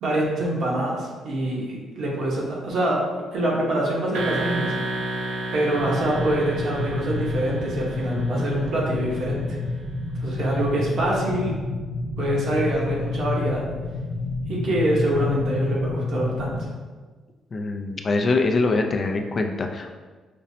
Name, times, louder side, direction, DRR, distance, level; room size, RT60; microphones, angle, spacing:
voice 1, 0.0-4.7 5.5-9.6 10.2-11.6 12.2-13.6 14.5-16.6, right 1 dB, 65° right, -3 dB, 0.9 m, -25 dB
sound 1, 4.1-9.1, right 2 dB, 90° right, 0.5 m, -32 dB
sound 2, 5.8-16.6, left 3 dB, 85° left, 0.6 m, -29 dB
voice 2, 17.5-19.9, left 3 dB, 35° left, 3 dB, 0.3 m, -23 dB
5.0 x 2.0 x 2.7 m, 1.4 s
cardioid pair, 105°, 0 cm